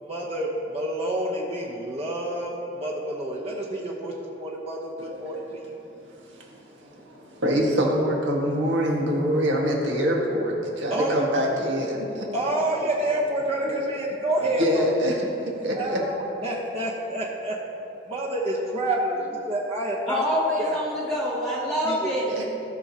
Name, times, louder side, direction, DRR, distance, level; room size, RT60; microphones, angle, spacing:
voice 1, 0.0-5.8 10.9-11.2 12.3-14.9 15.7-17.6 18.1-20.2 20.6-20.9 21.8-22.2, right 1 dB, 35° right, -4 dB, 0.9 m, -28 dB
voice 2, 6.3-12.3 13.6-13.8 14.6-16.0 22.3-22.4, equal, 80° right, -2 dB, 1.7 m, -25 dB
voice 3, 20.1-22.4, equal, 5° left, -7 dB, 1.0 m, -26 dB
17.0 x 6.1 x 2.9 m, 2.9 s
head